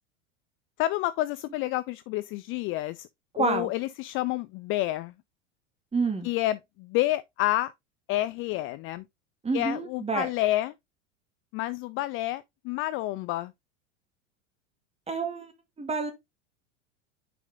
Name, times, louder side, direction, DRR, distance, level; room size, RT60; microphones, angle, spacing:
voice 1, 0.8-3.1 3.4-5.1 6.2-7.7 8.1-9.0 9.5-10.7 11.5-13.5, left 16 dB, 35° left, 0.4 m, -29 dB
voice 2, 3.3-3.7 5.9-6.3 9.4-10.3 15.1-15.5 15.8-16.1, right 4 dB, 15° right, 2.2 m, -28 dB
6.7 x 5.0 x 3.6 m
hypercardioid pair, 85°, 37 cm